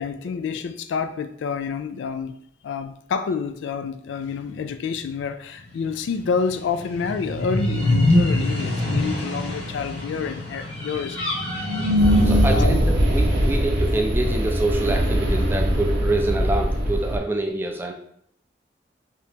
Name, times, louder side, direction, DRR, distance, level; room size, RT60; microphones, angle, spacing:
voice 1, 0.0-2.4 2.6-11.2 12.5-12.8, left 5 dB, 80° left, 9 dB, 0.3 m, -28 dB
sound 1, 6.8-12.7, left 1 dB, 30° left, 0.7 m, -23 dB
sound 2, 12.0-17.2, equal, 55° right, 0.7 m, -21 dB
voice 2, 12.2-17.9, right 2 dB, 10° right, 3 dB, 0.3 m, -26 dB
2.9 x 2.8 x 3.3 m, 0.70 s
head